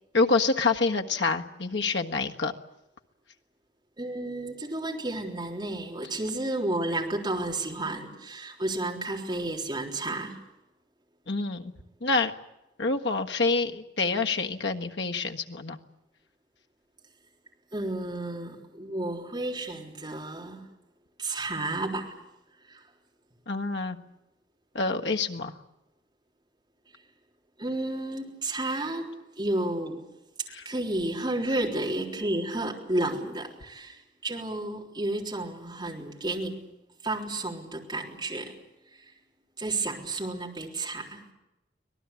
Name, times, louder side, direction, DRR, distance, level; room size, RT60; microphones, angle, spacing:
voice 1, 0.1-2.5 11.3-11.7 12.0-12.3 12.8-15.8 23.5-24.0 24.7-25.6 30.5-30.6, left 3 dB, 85° left, 4 dB, 1.6 m, -27 dB
voice 2, 4.0-10.4 17.7-20.7 21.2-22.2 22.7-22.8 27.6-30.1 30.7-36.6 37.0-38.6 38.9-39.1 39.6-41.3, right 2 dB, 25° right, -1 dB, 3.8 m, -32 dB
25.0 x 19.0 x 8.4 m, 0.94 s
head